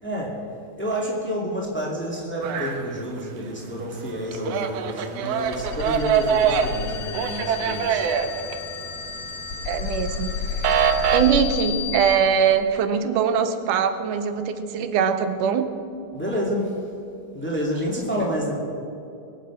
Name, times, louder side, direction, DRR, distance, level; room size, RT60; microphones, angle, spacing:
voice 1, 0.0-0.4 0.8-8.0 16.1-16.9 17.3-18.6, equal, 5° left, -3 dB, 1.9 m, -29 dB
sound 1, 2.4-3.5 3.8-9.3 9.6-11.2, right 8 dB, 70° right, 1.6 m, -24 dB
sound 2, 5.3-12.2, left 6 dB, 75° left, 3.6 m, -31 dB
voice 2, 9.7-15.7, right 7 dB, 90° right, 9 dB, 2.3 m, -22 dB
22.0 x 8.3 x 6.3 m, 2.6 s
omnidirectional pair, 3.6 m